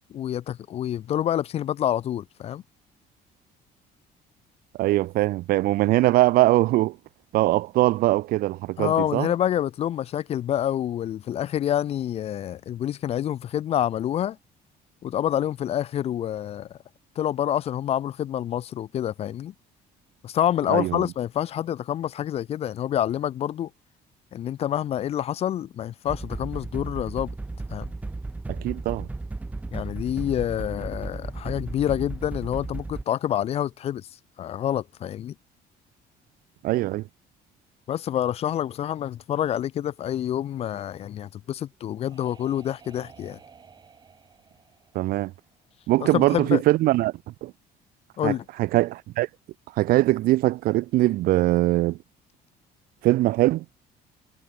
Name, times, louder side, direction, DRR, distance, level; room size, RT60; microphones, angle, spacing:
voice 1, 0.1-2.6 8.8-14.4 15.0-16.8 17.2-19.5 20.2-23.7 24.3-27.3 27.7-27.9 29.7-34.1 34.4-35.3 37.9-43.4 46.0-46.6 48.2-48.4, left 11 dB, 35° left, 0.5 m, -27 dB
voice 2, 4.8-7.0 7.3-9.3 20.7-21.0 28.6-29.1 36.6-37.0 44.9-45.3 45.9-47.1 47.4-47.5 48.2-48.3 48.6-49.3 49.8-52.0 53.0-53.6, right 17 dB, 60° right, 0.4 m, -21 dB
sound 1, 26.1-33.0, right 2 dB, 10° right, 0.6 m, -34 dB
sound 2, 41.4-46.0, right 6 dB, 25° right, 4.3 m, -53 dB
cardioid pair, 180°, 17 cm